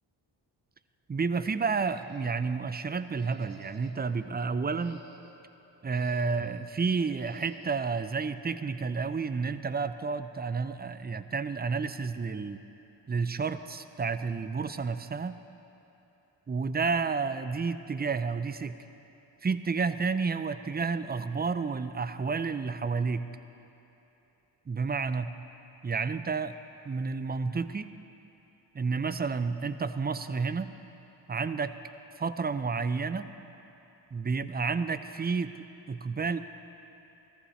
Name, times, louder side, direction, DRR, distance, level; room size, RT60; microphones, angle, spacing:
voice 1, 1.1-5.0 5.8-12.6 13.1-15.4 16.5-18.8 19.4-23.3 24.7-25.4 25.8-26.6 26.9-27.9 28.7-30.7 31.3-31.8 32.2-33.3 34.1-36.4, right 4 dB, 20° right, 11 dB, 0.5 m, -30 dB
sound 1, 1.6-2.6 3.1-4.1 4.6-5.4 5.9-6.7 7.2-7.9, right 1 dB, 40° right, 2.0 m, -55 dB
14.5 x 14.0 x 3.3 m, 3.0 s
supercardioid pair, 45°, 50 cm